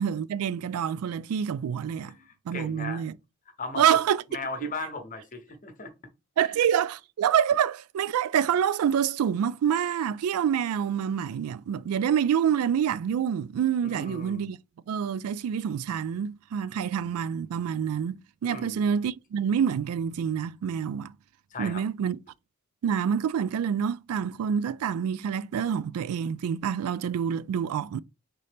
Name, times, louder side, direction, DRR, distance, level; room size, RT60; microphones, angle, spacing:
voice 1, 0.0-2.1 2.5-3.1 3.8-4.2 6.4-14.6 14.9-21.1 21.6-22.2 22.8-28.0, right 8 dB, 90° right, 0.3 m, -27 dB
voice 2, 1.9-3.0 3.6-4.0 4.3-5.9 13.9-14.4 18.5-18.9 21.5-21.8, left 3 dB, 40° left, 1.0 m, -37 dB
4.2 x 3.7 x 3.4 m
head